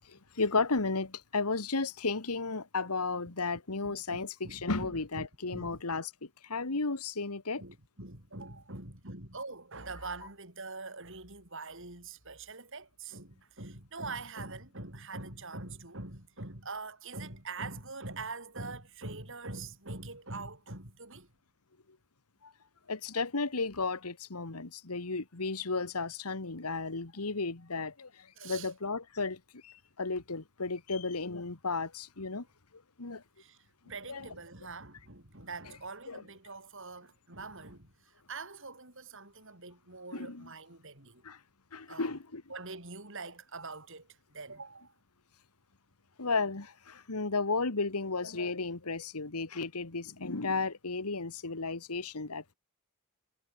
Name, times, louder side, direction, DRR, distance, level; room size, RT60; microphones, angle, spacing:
voice 1, 0.4-6.1 6.5-7.6 22.9-28.1 28.4-32.4 33.0-33.2 34.1-34.3 36.1-36.2 40.1-40.5 41.2-41.4 41.7-42.4 46.2-52.5, left 3 dB, 85° left, 1.8 m, -34 dB
voice 2, 3.8-5.3 5.5-5.8 7.6-21.3 28.4-28.7 33.4-33.6 33.9-37.9 38.3-41.2 41.9-42.2 42.5-44.9, right 3 dB, 60° right, 7.6 m, -44 dB
head